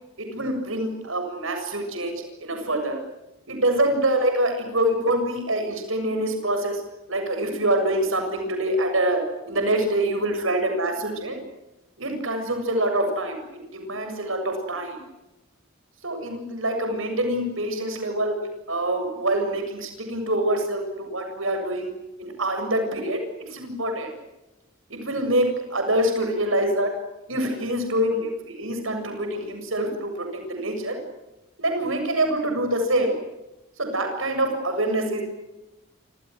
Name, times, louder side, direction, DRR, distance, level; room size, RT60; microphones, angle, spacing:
voice 1, 0.2-3.0 3.5-6.8 7.1-11.4 12.0-13.4 13.7-15.0 16.0-18.4 18.7-21.9 22.2-24.1 24.9-26.9 27.3-31.0 31.6-33.2 33.8-35.2, right 1 dB, 75° right, 5 dB, 7.4 m, -25 dB
29.5 x 28.0 x 6.3 m, 1.0 s
head